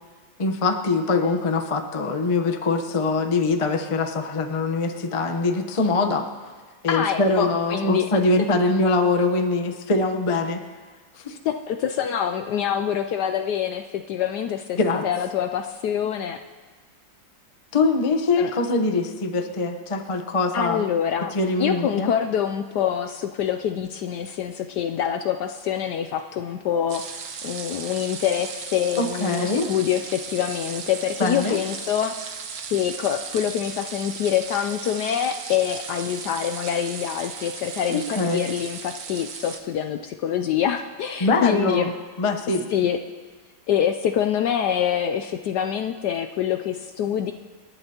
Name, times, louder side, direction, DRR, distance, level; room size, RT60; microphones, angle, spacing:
voice 1, 0.4-6.3 6.8-10.6 11.2-11.4 14.8-15.1 17.7-20.8 21.3-22.1 29.0-29.7 31.2-31.6 37.9-38.5 41.2-41.9 42.2-42.6, left 3 dB, 35° left, 5 dB, 0.5 m, -23 dB
voice 2, 6.9-8.1 11.4-16.4 18.4-18.5 20.5-21.3 21.6-32.1 32.7-41.9 42.7-43.0 43.7-47.3, left 9 dB, 75° left, 7 dB, 1.0 m, -25 dB
sound 1, 26.9-39.6, right 6 dB, 75° right, 1.7 m, -36 dB
28.0 x 11.0 x 2.9 m, 1.4 s
omnidirectional pair, 2.1 m